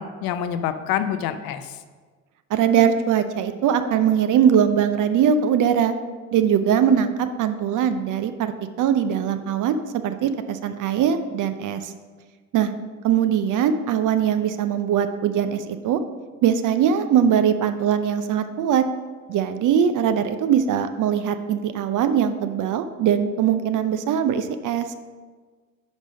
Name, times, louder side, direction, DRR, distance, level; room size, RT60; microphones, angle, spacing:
voice 1, 0.0-1.7, left 9 dB, 60° left, 11 dB, 0.6 m, -27 dB
voice 2, 2.5-6.0 6.3-8.5 8.8-11.9 12.5-12.7 13.0-16.0 16.4-18.9 19.3-24.9, right 8 dB, 50° right, 10 dB, 0.6 m, -21 dB
5.2 x 5.1 x 5.2 m, 1.4 s
hypercardioid pair, 55°, 39 cm